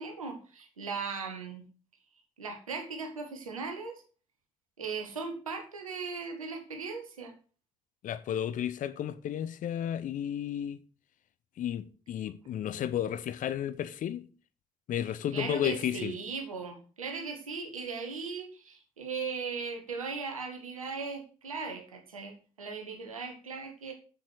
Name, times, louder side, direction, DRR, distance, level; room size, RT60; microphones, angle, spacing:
voice 1, 0.0-1.6 2.4-4.0 4.8-7.3 15.3-23.9, right 5 dB, 80° right, 1.3 m, -38 dB
voice 2, 8.0-10.8 11.6-14.3 14.9-16.2, left 10 dB, 50° left, 0.7 m, -33 dB
7.4 x 7.3 x 6.2 m
figure-of-eight pair, 40°, 17 cm